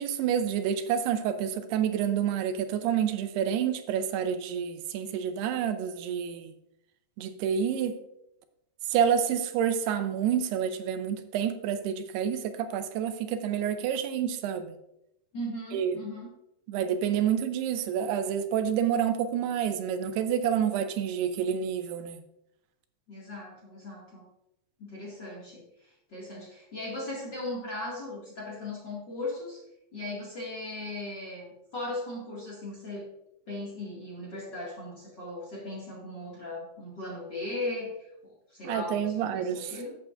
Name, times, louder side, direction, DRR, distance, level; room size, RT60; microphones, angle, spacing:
voice 1, 0.0-6.5 7.2-8.0 8.9-14.7 15.7-16.0 16.7-22.2 38.6-39.7, right 8 dB, 90° right, 9 dB, 2.7 m, -28 dB
voice 2, 15.3-16.3 23.1-24.2 24.8-29.6 29.9-33.1 33.5-40.0, left 2 dB, 35° left, -5 dB, 1.9 m, -38 dB
13.5 x 7.5 x 2.5 m, 0.83 s
omnidirectional pair, 4.7 m